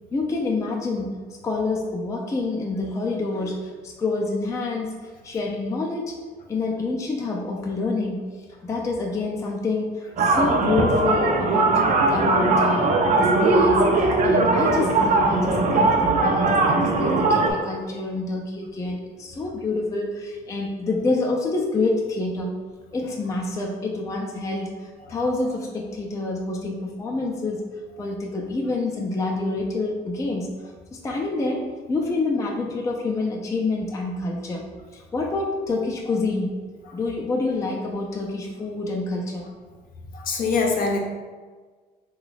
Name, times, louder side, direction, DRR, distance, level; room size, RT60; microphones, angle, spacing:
voice 1, 0.1-1.1 1.4-6.2 6.5-8.3 8.6-11.8 12.1-22.6 22.9-27.6 28.0-30.5 30.9-34.6 34.9-36.7 36.9-39.4, left 3 dB, 20° left, -1 dB, 0.4 m, -27 dB
sound 1, 10.2-17.5, right 3 dB, 50° right, 0.5 m, -20 dB
voice 2, 40.1-41.0, left 4 dB, 55° left, 1 dB, 0.6 m, -23 dB
3.4 x 2.2 x 3.9 m, 1.5 s
cardioid pair, 110°, 17 cm